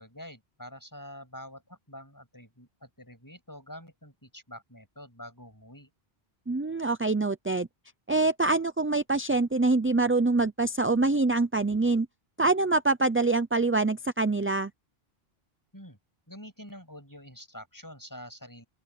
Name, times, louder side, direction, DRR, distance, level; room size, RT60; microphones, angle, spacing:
voice 1, 0.0-5.9 15.7-16.0 16.3-18.6, equal, 20° left, 7.1 m, -46 dB
voice 2, 6.5-7.7 8.1-12.1 12.4-14.7, right 3 dB, 20° right, 0.4 m, -25 dB
open air
omnidirectional pair, 1.0 m